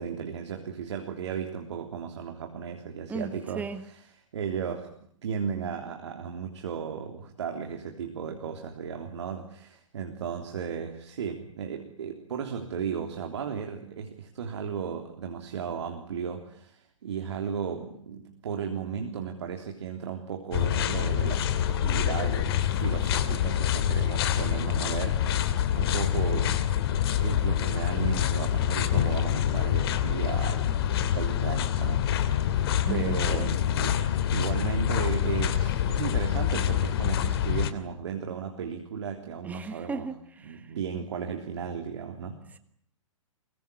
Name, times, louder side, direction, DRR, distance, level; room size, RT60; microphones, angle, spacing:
voice 1, 0.0-4.0 4.3-4.9 5.2-26.8 27.2-30.6 31.1-34.0 34.3-40.1 40.4-42.4, right 7 dB, 55° right, 3.5 m, -35 dB
voice 2, 3.1-3.8 32.9-33.6 39.4-40.7, right 4 dB, 10° right, 1.5 m, -36 dB
sound 1, 20.5-37.7, left 10 dB, 45° left, 2.7 m, -26 dB
25.0 x 22.5 x 9.8 m
figure-of-eight pair, 120°, 17 cm